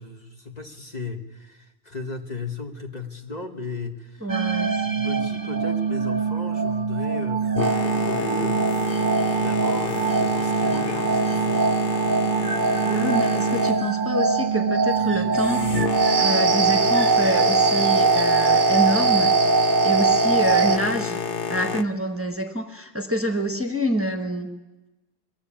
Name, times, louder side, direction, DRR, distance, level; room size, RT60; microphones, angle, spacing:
voice 1, 0.0-11.6, left 3 dB, 40° left, 4 dB, 1.6 m, -35 dB
voice 2, 4.2-4.8 12.8-15.7 16.1-19.3 19.8-21.2 21.5-24.5, equal, 15° right, 5 dB, 1.2 m, -26 dB
sound 1, 4.3-20.8, right 5 dB, 50° right, 1.0 m, -22 dB
Boat Water vehicle, 7.5-21.8, left 6 dB, 60° left, 1.1 m, -29 dB
22.0 x 16.0 x 8.7 m, 1.1 s
omnidirectional pair, 1.1 m